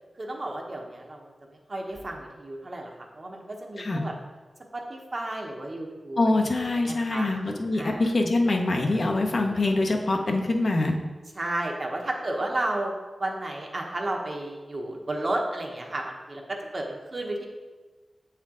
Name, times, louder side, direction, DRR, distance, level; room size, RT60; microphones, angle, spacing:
voice 1, 0.2-2.9 3.1-4.1 4.7-7.3 7.7-8.1 11.3-12.9 13.2-17.5, right 1 dB, 40° right, 1 dB, 0.9 m, -33 dB
voice 2, 6.2-10.9, left 2 dB, 55° left, 2 dB, 0.7 m, -24 dB
7.1 x 4.4 x 3.7 m, 1.3 s
wide cardioid pair, 100°, 0 cm